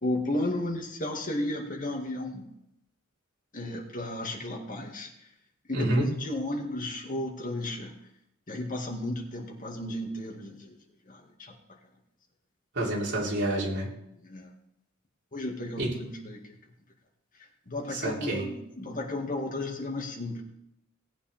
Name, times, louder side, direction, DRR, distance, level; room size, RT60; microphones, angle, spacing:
voice 1, 0.0-2.4 3.5-5.1 5.7-7.9 8.5-10.6 11.1-11.2 14.2-14.5 15.3-16.4 17.7-20.4, left 1 dB, 40° left, 1 dB, 2.1 m, -33 dB
voice 2, 5.7-6.2 12.7-13.9 15.8-16.1 17.9-18.5, right 1 dB, 60° right, -4 dB, 3.6 m, -28 dB
18.5 x 8.8 x 3.6 m, 0.80 s
head